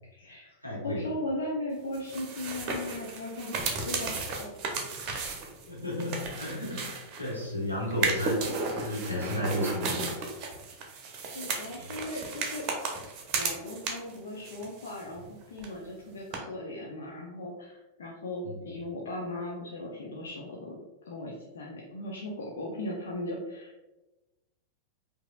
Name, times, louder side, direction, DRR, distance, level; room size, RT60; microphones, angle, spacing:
voice 1, 0.1-0.6 0.8-4.6 11.3-12.7 13.3-23.8, left 1 dB, 65° left, -2 dB, 0.5 m, -38 dB
voice 2, 0.6-1.1 5.7-10.0 11.8-11.9 18.4-18.6, left 1 dB, 85° left, -5 dB, 1.3 m, -33 dB
sound 1, 1.9-7.4 7.9-14.2 14.4-15.3 15.6-15.7 16.3-16.4, right 4 dB, 40° right, 0.7 m, -34 dB
4.8 x 2.7 x 2.3 m, 1.0 s
figure-of-eight pair, 90°, 0 cm